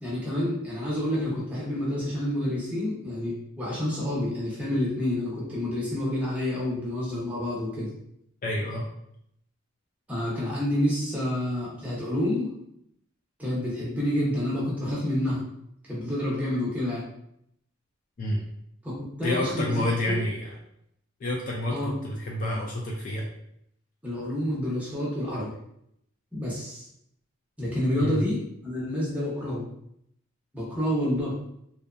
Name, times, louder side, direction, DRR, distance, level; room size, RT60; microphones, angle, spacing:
voice 1, 0.0-7.9 10.1-12.5 13.4-15.4 15.8-17.0 18.8-18.9 19.2-20.2 21.7-21.9 24.0-25.5 26.3-26.8 27.6-29.6 30.5-31.3, left 1 dB, 5° right, -7 dB, 0.7 m, -28 dB
voice 2, 8.4-8.9 18.2-18.4 19.2-20.4 21.2-23.2 28.0-28.2, left 1 dB, 35° left, -2 dB, 0.3 m, -28 dB
2.7 x 2.1 x 2.4 m, 0.75 s
head